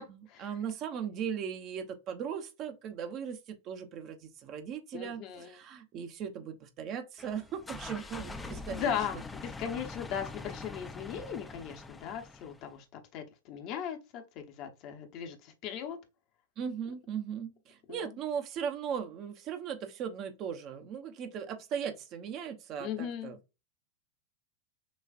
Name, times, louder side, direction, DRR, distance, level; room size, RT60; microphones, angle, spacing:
voice 1, 0.0-8.9 16.6-23.4, right 7 dB, 35° right, 0.8 m, -38 dB
voice 2, 4.9-5.5 8.7-12.8 13.1-16.0 17.9-18.1 22.8-23.3, left 8 dB, 40° left, 0.9 m, -38 dB
sound 1, 7.2-12.7, left 3 dB, 10° left, 0.5 m, -44 dB
6.3 x 2.4 x 2.5 m
figure-of-eight pair, 90°, 0 cm